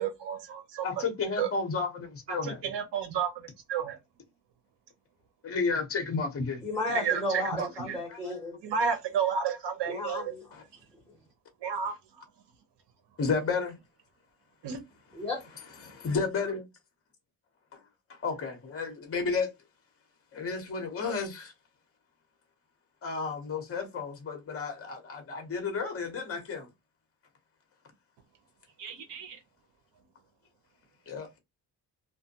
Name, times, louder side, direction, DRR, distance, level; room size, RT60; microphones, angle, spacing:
voice 1, 0.0-1.0 1.4-1.5 2.3-4.0 6.9-7.2 7.6-8.0 8.6-10.2 11.6-12.0 14.6-14.8 28.8-29.4, right 7 dB, 75° right, 0.9 m, -31 dB
voice 2, 0.8-2.6 5.4-6.6 13.2-13.7 15.8-16.6 18.2-19.5 20.3-21.5 23.0-26.7 31.1-31.3, left 4 dB, 30° left, 0.9 m, -32 dB
voice 3, 6.6-8.6 9.8-10.6 11.1-11.2 15.1-16.0, left 1 dB, 5° left, 1.2 m, -34 dB
2.5 x 2.1 x 2.7 m
cardioid pair, 110°, 43 cm